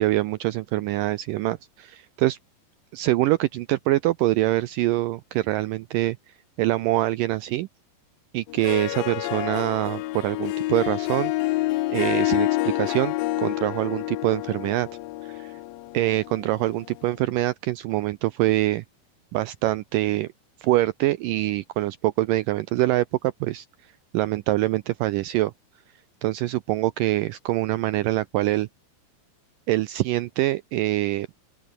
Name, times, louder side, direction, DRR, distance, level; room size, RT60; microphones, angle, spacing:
voice 1, 0.0-2.4 2.9-7.7 8.3-11.6 11.9-14.9 15.9-18.8 19.3-20.3 20.6-23.7 24.1-25.5 26.2-28.7 29.7-31.3, right 17 dB, 80° right, 1.9 m, -24 dB
Harp, 8.5-17.1, left 18 dB, 75° left, 2.4 m, -28 dB
open air
omnidirectional pair, 4.5 m